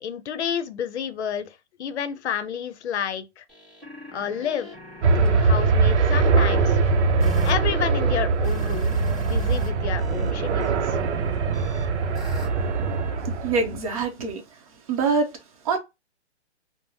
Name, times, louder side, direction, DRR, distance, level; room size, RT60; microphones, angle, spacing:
voice 1, 0.0-3.4 4.1-4.7 5.1-6.8 7.4-11.0, left 8 dB, 70° left, 0.6 m, -30 dB
sound 1, 3.5-9.7 10.0-13.3, equal, ahead, 1.1 m, -42 dB
sound 2, 5.0-13.8, right 4 dB, 80° right, 0.6 m, -22 dB
voice 2, 13.4-14.4 14.9-15.3 15.6-15.8, right 4 dB, 30° right, 0.8 m, -24 dB
3.2 x 2.0 x 2.7 m
hypercardioid pair, 165°, 35 cm